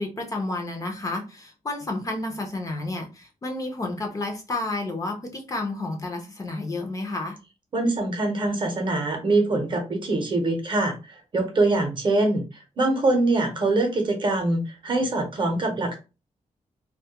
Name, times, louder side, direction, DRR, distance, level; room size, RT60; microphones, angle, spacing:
voice 1, 0.0-7.4, left 2 dB, 25° left, 2 dB, 0.4 m, -31 dB
voice 2, 7.7-12.4 12.8-15.9, right 2 dB, 40° right, 4 dB, 0.6 m, -23 dB
2.2 x 2.0 x 2.8 m, 0.29 s
wide cardioid pair, 175°, 13 cm